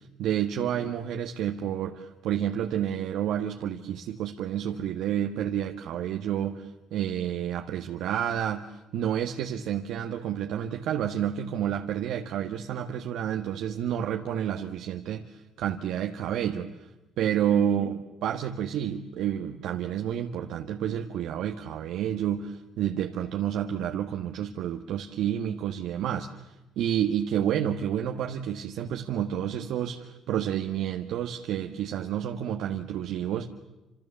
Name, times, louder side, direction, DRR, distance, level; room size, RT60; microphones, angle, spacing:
voice 1, 0.0-8.6 8.9-16.7 17.2-26.3 26.8-33.5, right 10 dB, 75° right, 4 dB, 1.5 m, -30 dB
29.5 x 27.5 x 7.2 m, 1.0 s
supercardioid pair, 70°, 0 cm